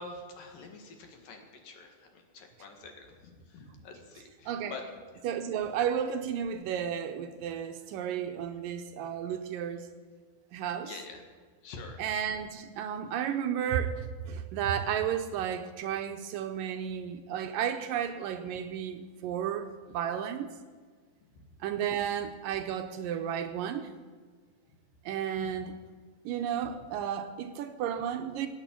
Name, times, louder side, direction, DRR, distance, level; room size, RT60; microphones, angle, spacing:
voice 1, 0.0-4.8 10.8-11.2 11.6-12.0 25.4-25.5, left 3 dB, 70° left, 3 dB, 3.5 m, -46 dB
voice 2, 4.5-4.8 5.2-9.9 10.5-10.9 12.0-20.5 21.6-23.9 25.1-25.7 26.3-28.5, right 9 dB, 75° right, 7 dB, 2.3 m, -33 dB
18.5 x 8.6 x 8.4 m, 1.5 s
omnidirectional pair, 4.2 m